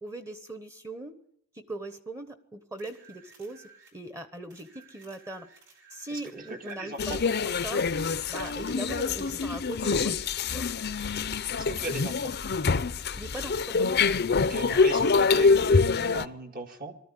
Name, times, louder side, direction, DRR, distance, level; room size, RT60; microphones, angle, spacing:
voice 1, 0.0-1.2 1.5-5.5 5.9-10.2 10.5-10.7 13.1-14.1, right 2 dB, 15° right, 10 dB, 1.2 m, -40 dB
sound 1, 2.8-4.0 4.5-6.8 8.0-9.5 12.9-13.0, right 4 dB, 60° right, 4.7 m, -55 dB
voice 2, 6.5-7.2 11.6-12.3 14.4-17.0, right 3 dB, 45° right, 4 dB, 2.0 m, -39 dB
sound 2, 7.0-16.3, left 4 dB, 50° left, 0.7 m, -25 dB
20.0 x 13.5 x 9.9 m, 0.74 s
head